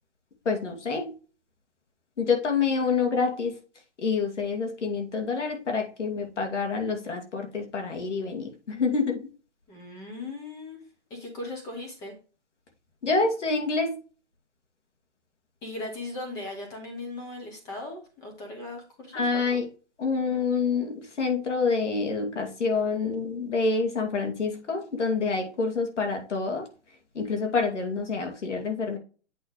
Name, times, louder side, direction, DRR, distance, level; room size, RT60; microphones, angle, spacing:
voice 1, 0.4-1.1 2.2-3.5 4.0-9.3 13.0-14.0 19.1-19.7 20.0-26.7 27.1-29.0, left 4 dB, 85° left, 4 dB, 2.5 m, -27 dB
voice 2, 9.7-10.8 11.1-12.1 15.6-19.6, left 2 dB, 10° left, 2 dB, 1.1 m, -38 dB
8.6 x 3.3 x 4.7 m, 0.35 s
hypercardioid pair, 170°, 35 cm